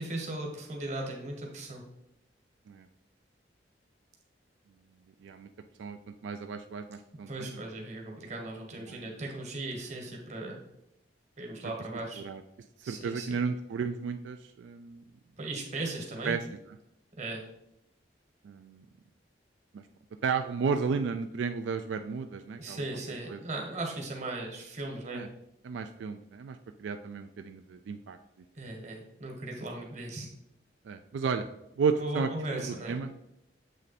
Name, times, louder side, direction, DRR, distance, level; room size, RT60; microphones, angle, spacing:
voice 1, 0.0-1.8 7.3-10.6 11.4-12.2 12.8-13.4 15.4-16.4 17.2-17.4 22.6-25.2 28.5-30.3 32.0-33.0, right 2 dB, 40° right, 1 dB, 1.2 m, -37 dB
voice 2, 5.8-7.6 8.8-9.2 12.2-12.4 12.9-15.0 16.2-16.4 18.4-18.8 19.7-19.8 20.2-22.8 23.3-23.4 25.1-25.3 25.6-28.2 30.8-31.5 31.8-32.3 32.6-33.1, right 5 dB, 85° right, 7 dB, 0.3 m, -33 dB
7.5 x 3.2 x 4.1 m, 0.83 s
head